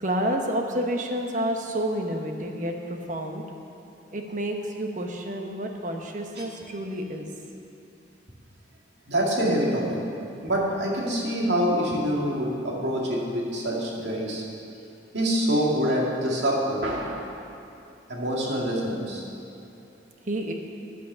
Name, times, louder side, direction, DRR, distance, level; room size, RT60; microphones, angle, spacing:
voice 1, 0.0-3.4 4.1-7.3 20.3-20.5, right 1 dB, 45° right, 3 dB, 1.1 m, -29 dB
voice 2, 9.1-10.1 10.4-14.4 15.1-17.3 18.1-19.2, equal, 70° right, -3 dB, 2.2 m, -26 dB
10.5 x 8.3 x 6.8 m, 2.7 s
head